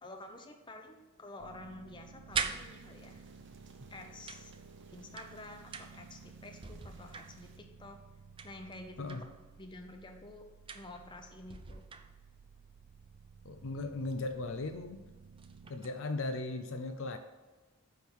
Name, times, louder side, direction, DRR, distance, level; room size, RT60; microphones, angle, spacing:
voice 1, 0.0-3.2 3.9-4.5 4.9-8.0 8.4-9.2 9.6-10.4 10.7-11.8, left 2 dB, 20° left, 4 dB, 0.8 m, -49 dB
sound 1, 1.4-15.7, right 5 dB, 80° right, 0.5 m, -55 dB
sound 2, 2.2-3.3 4.3-6.2 6.5-7.7 8.4-9.4 10.7-11.2 11.5-12.5 14.1-14.2 14.7-14.8 15.2-16.0, right 5 dB, 25° right, 0.4 m, -42 dB
sound 3, 2.3-7.6, right 3 dB, 55° right, 0.9 m, -62 dB
voice 2, 13.4-15.1 15.7-17.2, left 2 dB, 60° left, 7 dB, 0.6 m, -37 dB
9.4 x 3.6 x 6.2 m, 1.2 s
head